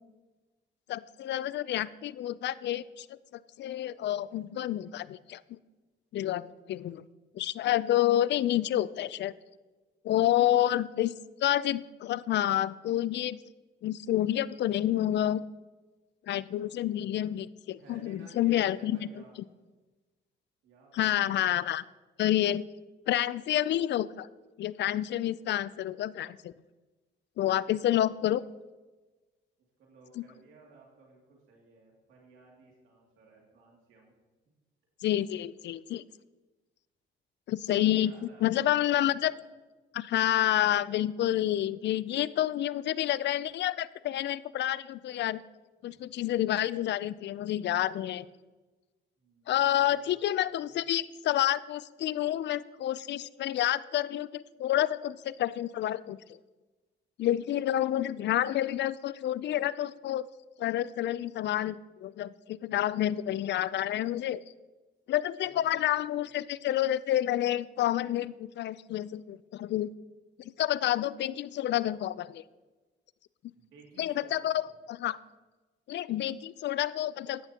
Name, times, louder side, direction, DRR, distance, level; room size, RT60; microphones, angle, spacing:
voice 1, 0.9-3.1 3.3-5.6 6.1-7.0 7.3-9.3 10.0-11.1 11.4-13.4 13.8-15.4 16.3-19.0 20.9-21.8 22.2-22.6 23.1-24.3 24.6-26.5 27.4-28.4 30.2-30.3 35.0-36.0 37.5-39.3 39.9-45.4 45.8-48.3 49.5-56.4 57.2-60.3 60.6-64.4 65.1-69.9 70.4-72.4 74.0-75.2 75.9-77.4, left 12 dB, 60° left, 18 dB, 0.4 m, -29 dB
voice 2, 10.1-10.6 17.7-19.4 20.6-21.3 29.8-34.1 37.6-39.4 45.8-46.0 49.2-50.8 65.4-66.3 73.5-74.7, right 3 dB, 85° right, -2 dB, 2.5 m, -57 dB
14.0 x 10.5 x 2.9 m, 1.2 s
cardioid pair, 90°, 20 cm